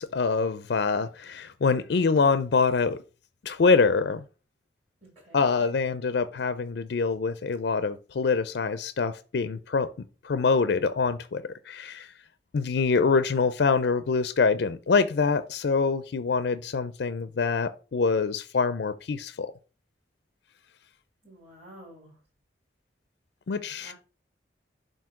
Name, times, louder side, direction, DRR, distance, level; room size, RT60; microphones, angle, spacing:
voice 1, 0.0-3.0 3.4-4.2 5.3-9.9 10.2-12.1 12.5-19.5 23.5-23.9, left 4 dB, 65° left, 0.4 m, -25 dB
voice 2, 5.0-5.7 21.2-22.2 23.5-23.9, right 1 dB, 35° right, 2.5 m, -50 dB
7.3 x 2.7 x 5.7 m
head